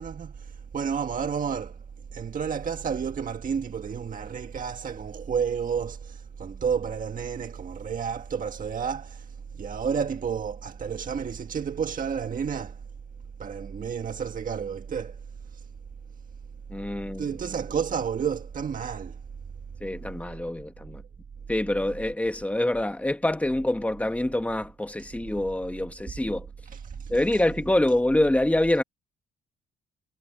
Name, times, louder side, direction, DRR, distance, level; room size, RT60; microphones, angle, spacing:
voice 1, 0.0-1.8 2.1-12.8 13.4-15.7 17.2-19.2 26.7-27.4, right 7 dB, 45° right, 1.5 m, -31 dB
voice 2, 16.7-17.4 19.8-21.0 21.5-26.5 27.1-28.8, left 1 dB, 5° left, 1.7 m, -26 dB
cardioid pair, 90°, 20 cm